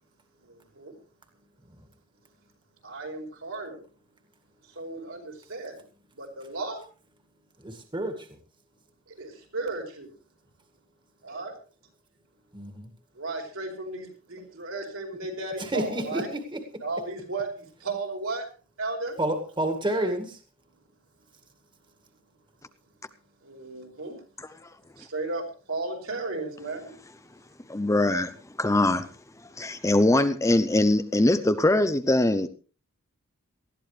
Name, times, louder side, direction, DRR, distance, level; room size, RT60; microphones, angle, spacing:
voice 1, 0.4-1.0 2.8-3.8 4.8-5.8 6.2-6.8 9.2-10.1 11.2-11.5 13.2-16.3 16.8-18.5 18.8-19.2 23.4-24.2 25.0-26.9, right 3 dB, 75° right, 2 dB, 5.1 m, -34 dB
voice 2, 7.6-8.2 12.5-12.9 15.6-16.2 19.2-20.4, right 1 dB, 25° right, 5 dB, 2.1 m, -29 dB
voice 3, 27.7-29.1 29.6-32.5, left 1 dB, 15° left, 10 dB, 0.7 m, -22 dB
19.5 x 14.0 x 3.3 m, 0.37 s
head